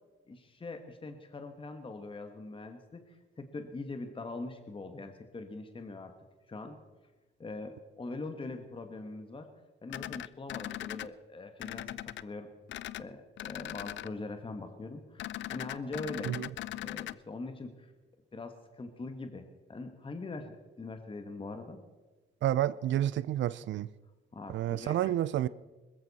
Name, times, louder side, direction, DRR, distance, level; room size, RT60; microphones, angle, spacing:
voice 1, 0.3-6.1 6.5-6.8 7.4-9.5 9.8-12.5 13.0-16.4 16.8-17.9 18.3-21.8 24.3-25.1, left 3 dB, 25° left, 1.5 m, -42 dB
sound 1, 9.9-11.1 11.6-12.2 12.7-13.0 13.4-14.1 15.2-17.1, left 14 dB, 70° left, 0.5 m, -39 dB
voice 2, 22.4-23.9 24.5-25.5, right 12 dB, 70° right, 0.5 m, -30 dB
21.0 x 14.0 x 4.2 m
cardioid pair, 90°, 20 cm